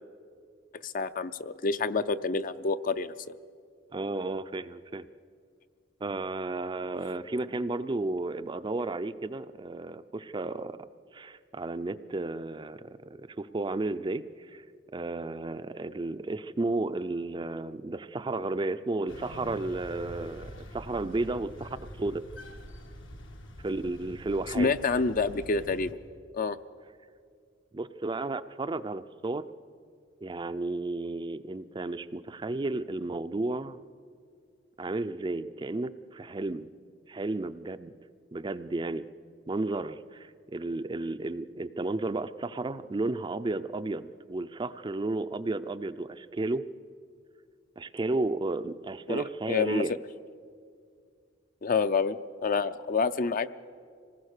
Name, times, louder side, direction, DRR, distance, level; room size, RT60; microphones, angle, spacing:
voice 1, 0.7-3.1 24.6-26.0 26.3-26.6 49.1-49.8 51.6-53.5, left 4 dB, 45° left, 12 dB, 0.5 m, -28 dB
voice 2, 3.9-5.1 6.0-10.9 11.1-14.6 14.9-22.2 23.6-24.7 27.7-29.5 30.2-33.8 34.8-36.7 37.1-37.9 38.3-39.1 39.5-46.6 47.8-49.9, right 2 dB, 25° right, 12 dB, 0.4 m, -33 dB
sound 1, 19.1-25.9, equal, 80° left, 1.6 m, -45 dB
26.0 x 19.0 x 6.6 m, 2.2 s
head